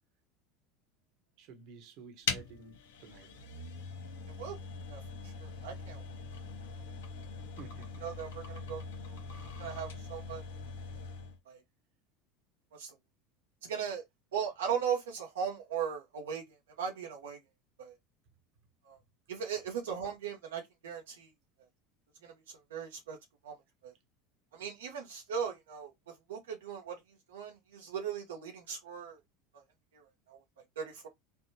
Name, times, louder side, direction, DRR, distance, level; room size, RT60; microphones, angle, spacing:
voice 1, 1.4-3.3 7.6-8.0, right 5 dB, 60° right, 1.0 m, -51 dB
sound 1, 2.2-11.4, left 5 dB, 80° left, 0.9 m, -42 dB
voice 2, 4.9-6.0 8.0-9.2 9.6-10.4 11.5-11.6 12.7-13.0 13.6-14.0 14.3-16.4 16.8-17.4 17.8-17.9 18.8-19.0 19.3-21.3 22.2-23.2 23.4-23.6 23.8-23.9 24.5-27.0 27.3-29.2 29.5-29.6 29.9-30.4 30.8-31.1, right 7 dB, 90° right, 0.8 m, -38 dB
3.5 x 2.1 x 2.7 m
hypercardioid pair, 90°, 0 cm